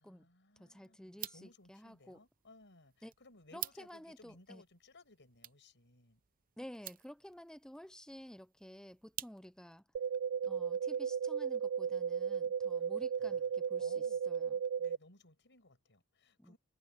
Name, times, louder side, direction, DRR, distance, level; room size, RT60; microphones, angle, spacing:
voice 1, 0.0-6.2 12.8-13.5 13.8-14.2 14.8-16.6, left 2 dB, 55° left, 7.0 m, -61 dB
voice 2, 0.6-2.2 3.0-3.1 3.5-4.6 6.6-9.8 10.4-14.6 16.4-16.5, equal, 5° left, 0.9 m, -52 dB
sound 1, 1.1-9.8, right 13 dB, 40° right, 0.7 m, -51 dB
sound 2, 9.9-15.0, right 7 dB, 55° right, 0.3 m, -35 dB
head